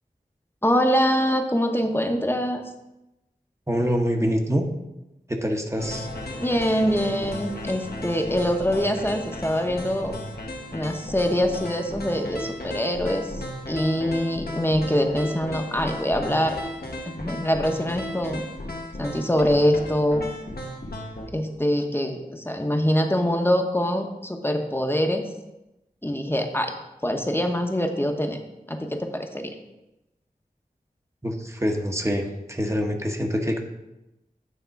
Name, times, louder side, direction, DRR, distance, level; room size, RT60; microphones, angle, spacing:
voice 1, 0.6-2.6 6.4-10.1 10.7-16.6 17.1-18.4 19.0-20.3 21.3-25.2 26.0-26.7 27.0-28.4 28.7-29.6, equal, 15° left, 4 dB, 0.9 m, -24 dB
voice 2, 3.7-4.7 5.3-6.1 31.2-33.6, equal, 20° right, 2 dB, 1.0 m, -25 dB
sound 1, 5.8-21.3, left 1 dB, 90° left, 1.1 m, -35 dB
9.3 x 3.7 x 5.7 m, 0.95 s
wide cardioid pair, 55°, 16 cm